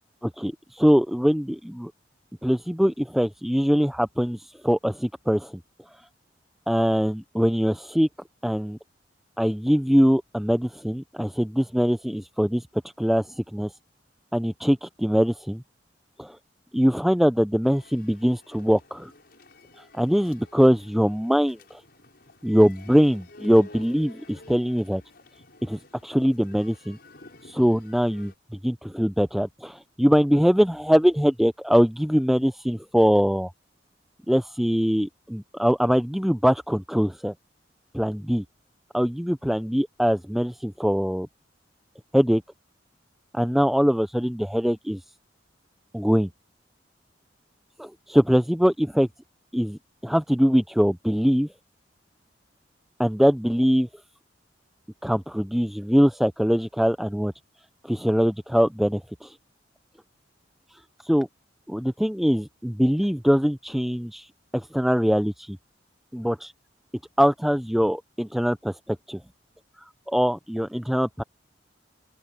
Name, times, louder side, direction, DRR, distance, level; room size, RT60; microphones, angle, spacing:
voice 1, 0.4-1.9 2.4-5.6 6.7-8.1 8.4-8.8 9.4-12.6 13.0-13.7 14.3-15.6 16.2-16.4 16.7-19.1 19.9-21.8 22.4-25.0 25.6-27.0 27.4-28.3 28.6-33.5 34.3-37.3 37.9-38.4 38.9-41.3 42.1-42.4 43.3-45.0 45.9-46.3 47.8-49.1 49.5-51.5 53.0-53.9 55.0-57.3 57.8-59.3 61.0-61.3 61.7-64.3 64.5-65.6 66.1-66.5 67.2-69.2 70.1-71.2, equal, ahead, 0.4 m, -22 dB
sound 1, 17.6-28.3, left 2 dB, 60° left, 7.2 m, -51 dB
open air
head